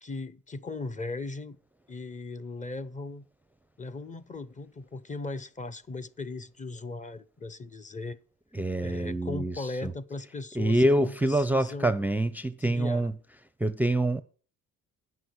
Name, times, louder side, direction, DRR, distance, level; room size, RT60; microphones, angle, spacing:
voice 1, 0.0-1.6 1.9-3.3 3.8-8.2 8.8-11.9 12.6-13.1, left 3 dB, 25° left, 0.8 m, -38 dB
voice 2, 8.5-9.9 10.6-13.1 13.6-14.2, right 1 dB, 5° right, 0.5 m, -26 dB
9.4 x 6.2 x 8.0 m
cardioid pair, 90°, 30 cm